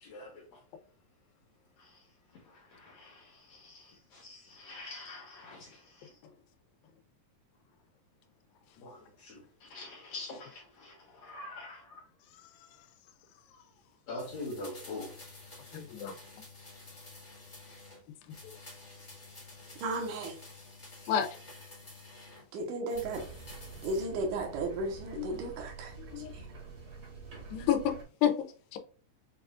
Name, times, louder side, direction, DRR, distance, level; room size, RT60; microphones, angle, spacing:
voice 1, 0.0-0.4 2.7-6.1 8.8-9.4 9.7-11.9 14.1-15.1, left 2 dB, 65° left, 1.7 m, -44 dB
sound 1, 14.2-18.0 18.3-22.4 22.9-24.1 24.4-24.5, left 2 dB, 30° left, 0.8 m, -50 dB
voice 2, 15.7-16.1 21.1-21.3 25.1-25.3 26.1-26.3 27.5-28.0 28.2-28.4 28.7-28.8, left 9 dB, 90° left, 2.4 m, -28 dB
voice 3, 19.8-20.3 22.5-23.2 23.8-25.9, right 2 dB, 70° right, 2.4 m, -34 dB
sound 2, 22.9-28.0, right 4 dB, 55° right, 1.5 m, -47 dB
6.4 x 2.4 x 2.4 m
omnidirectional pair, 4.0 m